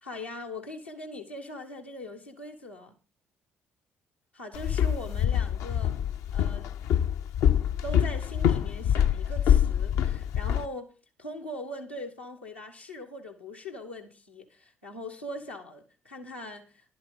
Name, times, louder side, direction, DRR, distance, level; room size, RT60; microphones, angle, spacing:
voice 1, 0.0-2.9 4.3-5.9 6.3-6.7 7.8-10.9 11.2-16.9, left 1 dB, 85° left, 1.4 m, -41 dB
Walk footsteps, 4.5-10.7, left 9 dB, 60° left, 0.5 m, -25 dB
11.0 x 7.8 x 5.4 m
figure-of-eight pair, 45°, 6 cm